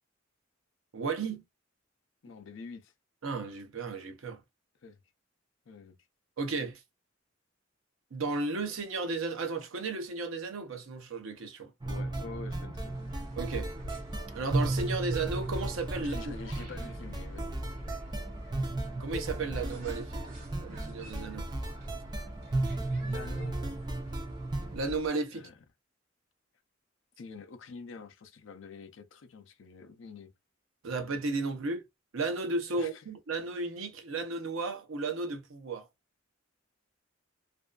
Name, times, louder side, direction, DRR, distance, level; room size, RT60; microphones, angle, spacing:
voice 1, 0.9-1.4 3.2-4.4 6.4-6.8 8.1-11.7 13.4-13.7 14.3-16.3 19.0-20.2 20.6-21.4 24.7-25.5 30.8-31.8 32.1-35.9, right 3 dB, 80° right, 0.6 m, -34 dB
voice 2, 2.2-2.9 4.8-5.0 5.7-6.0 11.8-13.0 15.9-18.0 23.0-23.6 25.3-25.5 27.2-30.3 32.7-33.0, left 4 dB, 65° left, 0.5 m, -47 dB
sound 1, 11.8-24.8, right 2 dB, 20° right, 0.4 m, -35 dB
sound 2, 12.8-25.1, equal, 50° right, 1.2 m, -48 dB
2.5 x 2.3 x 2.2 m
head